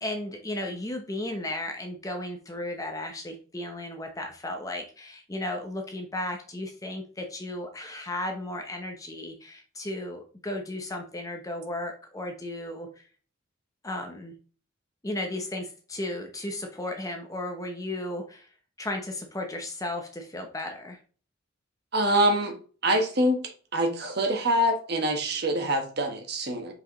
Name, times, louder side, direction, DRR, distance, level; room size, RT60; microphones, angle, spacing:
voice 1, 0.0-13.0 13.8-14.3 15.0-18.5 18.8-21.0, left 1 dB, 15° left, 4 dB, 0.8 m, -35 dB
voice 2, 21.9-22.5 22.8-23.4 23.7-26.7, right 1 dB, 55° right, 4 dB, 1.4 m, -25 dB
6.3 x 4.9 x 3.1 m, 0.40 s
head